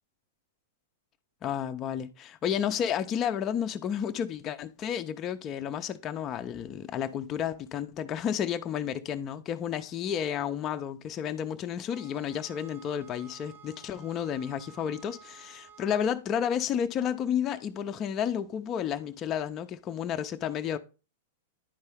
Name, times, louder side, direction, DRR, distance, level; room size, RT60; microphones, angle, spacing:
voice 1, 1.4-20.8, left 9 dB, 30° left, 0.6 m, -31 dB
sound 1, 11.9-16.1, right 7 dB, 75° right, 1.0 m, -53 dB
10.5 x 4.4 x 3.4 m
hypercardioid pair, 110°, 0 cm